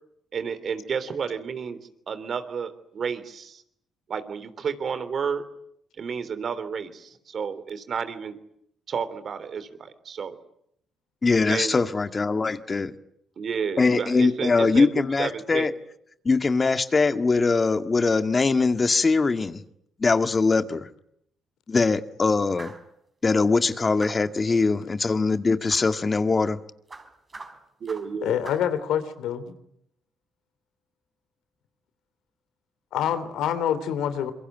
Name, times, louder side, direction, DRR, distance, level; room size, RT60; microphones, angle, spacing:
voice 1, 0.3-1.8 2.1-3.6 4.1-5.4 6.0-8.4 8.9-10.4 11.5-11.7 13.4-15.7 27.8-28.4, right 6 dB, 55° right, 3.4 m, -31 dB
voice 2, 11.2-12.9 13.8-15.7 16.3-19.6 20.0-20.9 21.7-22.7 23.2-26.6, left 4 dB, 35° left, 1.9 m, -22 dB
sound 1, 22.6-22.9 24.0-24.4 25.7-25.9 26.9-28.2 28.4-28.7, right 3 dB, 30° right, 4.7 m, -43 dB
voice 3, 28.2-29.6 32.9-34.3, left 9 dB, 80° left, 3.0 m, -26 dB
27.0 x 23.0 x 9.3 m
supercardioid pair, 60°, 0 cm